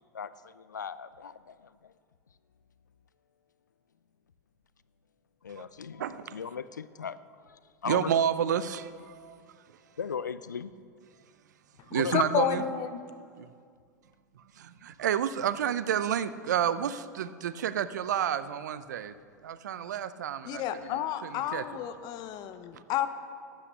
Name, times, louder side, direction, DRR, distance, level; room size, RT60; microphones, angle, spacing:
voice 1, 0.1-1.9 5.4-8.1 10.0-10.7 11.9-12.1, left 6 dB, 90° left, 16 dB, 0.4 m, -38 dB
voice 2, 6.0-6.3 7.9-9.4 11.9-12.6 13.4-13.5 14.6-19.1 19.4-20.9 21.5-21.6, right 9 dB, 75° right, 14 dB, 0.5 m, -30 dB
voice 3, 12.1-13.0 20.4-23.1, left 10 dB, 45° left, 11 dB, 0.9 m, -31 dB
12.0 x 8.3 x 6.5 m, 2.1 s
hypercardioid pair, 90°, 10 cm